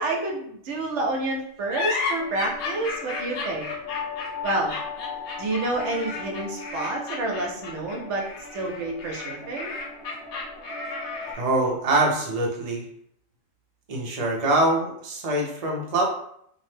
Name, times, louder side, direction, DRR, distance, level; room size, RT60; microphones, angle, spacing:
voice 1, 0.0-3.7 4.4-4.7 5.4-8.3 8.5-9.7, right 2 dB, 65° right, 0 dB, 0.8 m, -29 dB
sound 1, 1.7-11.5, left 3 dB, 65° left, 0.9 m, -33 dB
sound 2, 2.2-11.3, left 4 dB, 45° left, 0.3 m, -39 dB
voice 2, 11.4-12.8 13.9-16.0, right 2 dB, 50° right, -1 dB, 0.4 m, -24 dB
2.7 x 2.0 x 3.2 m, 0.69 s
omnidirectional pair, 1.4 m